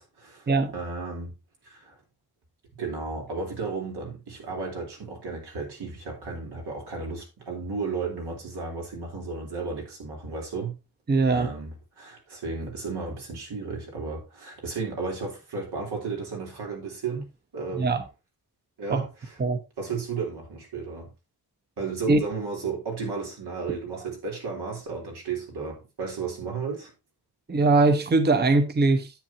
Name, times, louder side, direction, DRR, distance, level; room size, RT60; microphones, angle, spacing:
voice 1, 0.0-1.3 1.6-2.0 2.7-10.8 11.3-18.0 18.8-19.4 19.8-21.1 21.8-26.9, right 4 dB, 90° right, 3.7 m, -34 dB
voice 2, 11.1-11.5 17.7-18.0 18.9-19.0 19.4-19.6 22.1-22.2 27.5-29.1, right 3 dB, 25° right, 0.8 m, -21 dB
10.5 x 8.5 x 2.9 m
wide cardioid pair, 170°, 39 cm